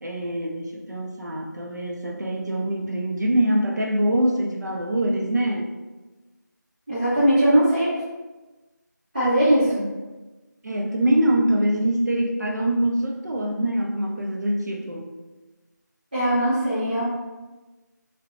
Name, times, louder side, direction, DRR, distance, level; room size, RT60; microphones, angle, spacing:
voice 1, 0.0-5.8 10.6-15.1, right 1 dB, 65° right, 0 dB, 0.4 m, -24 dB
voice 2, 6.9-7.9 9.1-9.8 16.1-17.1, right 1 dB, 30° right, -14 dB, 0.7 m, -20 dB
2.7 x 2.0 x 2.4 m, 1.2 s
figure-of-eight pair, 175°, 10 cm